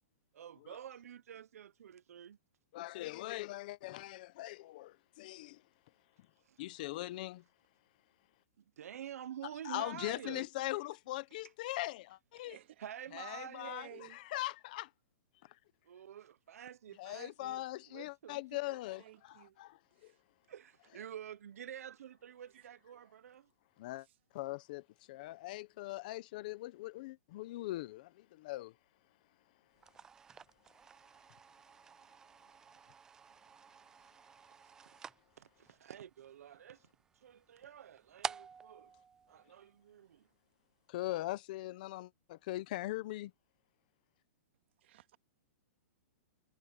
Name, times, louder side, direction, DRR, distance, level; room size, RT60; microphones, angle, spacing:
voice 1, 0.3-2.4 6.4-6.6 8.8-10.5 12.8-13.7 15.8-18.4 18.7-18.8 20.5-23.5 34.9-35.1 35.4-36.9 37.1-38.9 39.3-40.3, right 10 dB, 75° right, 0.7 m, -49 dB
voice 2, 2.7-5.6 6.6-7.4 9.6-12.6 13.1-14.9 15.4-15.6 17.0-20.1 23.8-24.1 24.3-28.7 40.9-43.3, left 17 dB, 35° left, 0.7 m, -41 dB
voice 3, 12.5-12.8 13.6-14.2 19.0-19.6 20.0-20.2 22.5-23.2 24.0-24.1 44.8-45.2, right 14 dB, 50° right, 2.3 m, -55 dB
sound 1, 29.7-40.1, right 6 dB, 5° right, 0.4 m, -50 dB
hypercardioid pair, 175°, 8 cm